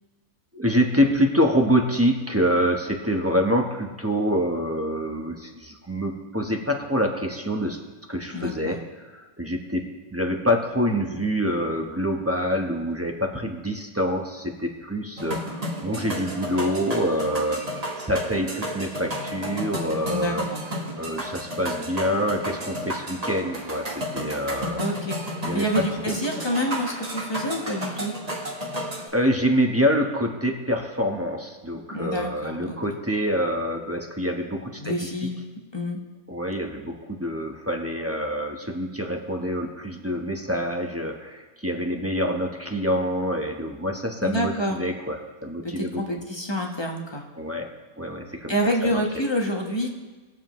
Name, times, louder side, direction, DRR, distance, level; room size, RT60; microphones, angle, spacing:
voice 1, 0.5-7.8 8.1-17.6 18.0-20.5 21.0-24.8 25.4-26.1 29.1-35.3 36.3-46.0 47.4-47.7 48.0-48.5 48.8-49.0, equal, 10° right, 2 dB, 0.8 m, -26 dB
voice 2, 8.3-8.8 20.1-20.6 24.8-25.2 25.5-28.1 31.9-32.8 34.8-35.4 35.7-36.0 44.2-44.8 45.6-47.2 48.5-49.9, equal, 20° left, 1 dB, 1.0 m, -27 dB
sound 1, 15.2-29.1, equal, 30° right, 1.3 m, -32 dB
20.0 x 7.3 x 3.1 m, 1.3 s
omnidirectional pair, 1.5 m